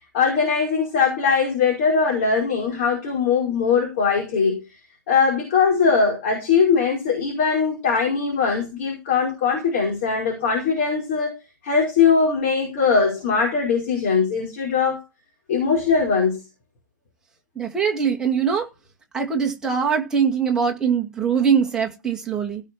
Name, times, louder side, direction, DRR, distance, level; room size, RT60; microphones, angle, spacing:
voice 1, 0.1-4.6 5.1-11.4 11.6-15.0 15.5-16.4, left 5 dB, 35° left, 5.1 m, -21 dB
voice 2, 17.6-18.7 19.1-22.6, right 6 dB, 5° right, 2.1 m, -22 dB
17.0 x 5.8 x 4.5 m
figure-of-eight pair, 125°, 11 cm